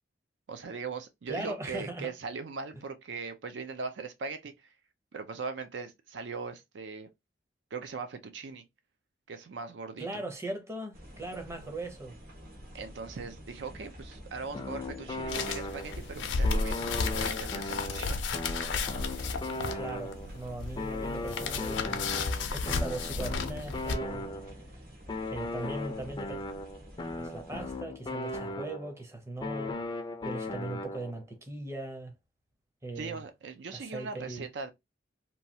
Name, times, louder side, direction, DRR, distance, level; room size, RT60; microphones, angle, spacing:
voice 1, 0.5-4.7 5.1-7.1 7.7-8.6 9.3-10.2 12.7-18.2 33.0-34.7, right 4 dB, 70° right, 0.4 m, -40 dB
voice 2, 1.3-2.1 10.0-12.2 19.7-24.6 25.3-26.4 27.2-29.8 30.2-32.1 32.8-33.2 33.9-34.5, right 2 dB, 15° right, 0.7 m, -39 dB
sound 1, 10.9-27.8, equal, 55° right, 1.1 m, -48 dB
sound 2, 14.5-16.1 16.4-20.4 20.8-24.6 25.1-29.0 29.4-31.2, left 2 dB, 25° left, 0.4 m, -38 dB
sound 3, 15.3-23.9, left 4 dB, 80° left, 0.5 m, -33 dB
3.0 x 2.3 x 2.7 m
head